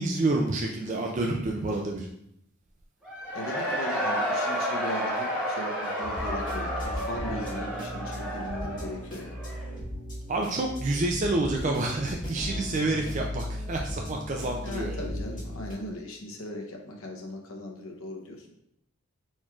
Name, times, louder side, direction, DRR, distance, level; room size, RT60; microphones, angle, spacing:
voice 1, 0.0-2.1 10.3-15.0, right 2 dB, 35° right, 1 dB, 0.4 m, -28 dB
Cheering / Crowd, 3.0-9.8, equal, 5° right, 1.6 m, -31 dB
voice 2, 3.3-9.4 12.8-13.0 14.6-18.5, left 1 dB, 80° left, 1 dB, 0.8 m, -38 dB
sound 1, 6.0-15.7, equal, 40° left, 1.7 m, -37 dB
4.5 x 4.3 x 2.4 m, 0.75 s
head